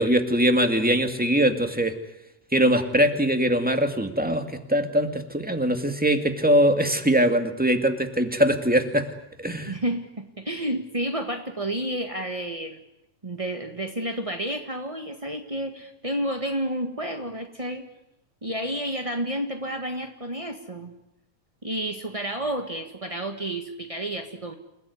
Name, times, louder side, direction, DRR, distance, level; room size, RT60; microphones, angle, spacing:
voice 1, 0.0-2.0 2.5-9.1 9.4-9.7, equal, 5° right, 6 dB, 1.6 m, -22 dB
voice 2, 9.7-12.8 13.2-17.8 18.4-20.9 21.6-24.5, right 1 dB, 30° right, 5 dB, 0.5 m, -30 dB
29.0 x 17.5 x 9.6 m, 0.87 s
omnidirectional pair, 3.6 m